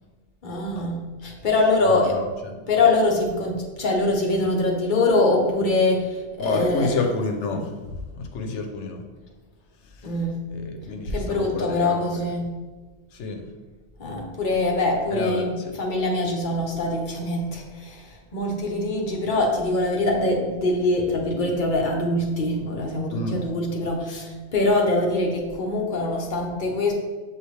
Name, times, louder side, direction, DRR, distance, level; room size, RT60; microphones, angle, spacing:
voice 1, 0.4-2.2 2.6-6.9 10.0-10.5 11.1-12.5 14.0-26.9, left 2 dB, 50° left, 0 dB, 0.8 m, -23 dB
voice 2, 1.8-2.5 6.4-9.0 9.8-10.1 10.5-12.3 13.1-13.5 15.1-15.7 23.1-23.4, left 3 dB, 85° left, 4 dB, 0.9 m, -30 dB
6.4 x 2.6 x 3.1 m, 1.3 s
omnidirectional pair, 1.2 m